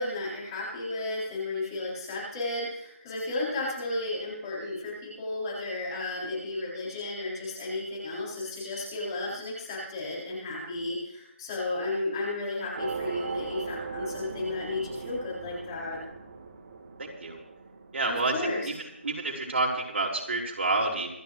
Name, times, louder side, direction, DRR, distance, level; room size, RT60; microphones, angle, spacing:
voice 1, 0.0-16.0 18.0-18.7, left 2 dB, 20° left, -6 dB, 7.3 m, -33 dB
sound 1, 12.8-19.6, right 4 dB, 50° right, 3.3 m, -39 dB
voice 2, 17.0-17.4 17.9-21.1, right 2 dB, 65° right, -1 dB, 5.6 m, -29 dB
27.0 x 10.5 x 3.3 m, 0.80 s
hypercardioid pair, 165°, 7 cm